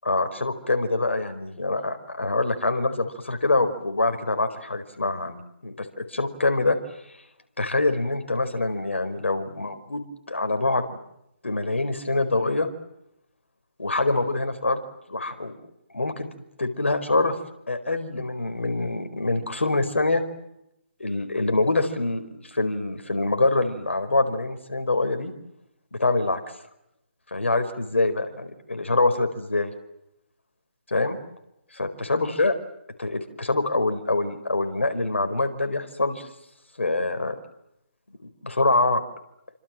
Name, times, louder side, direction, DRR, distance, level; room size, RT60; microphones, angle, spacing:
voice 1, 0.0-6.8 7.6-11.0 11.4-12.7 13.8-14.8 15.1-15.5 15.9-16.3 16.6-17.3 17.7-20.2 21.0-25.3 25.9-26.4 27.3-29.7 30.9-31.2 31.8-32.6 33.0-36.2 36.8-37.3 38.4-39.0, left 2 dB, 80° left, 7 dB, 4.7 m, -25 dB
28.5 x 25.5 x 7.7 m, 0.82 s
figure-of-eight pair, 145°, 7 cm